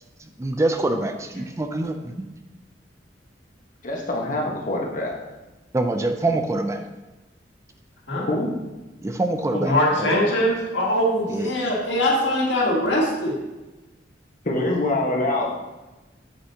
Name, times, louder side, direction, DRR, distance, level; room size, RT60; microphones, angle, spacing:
voice 1, 0.4-2.3 5.7-6.8 9.0-9.7 10.0-10.1 11.3-11.5, right 2 dB, 15° right, 6 dB, 0.4 m, -25 dB
voice 2, 3.8-5.2 8.3-8.5 14.4-15.5, left 1 dB, 45° left, -1 dB, 1.3 m, -24 dB
voice 3, 9.5-13.4, left 1 dB, 80° left, -3 dB, 2.0 m, -22 dB
7.8 x 7.8 x 2.8 m, 1.1 s
head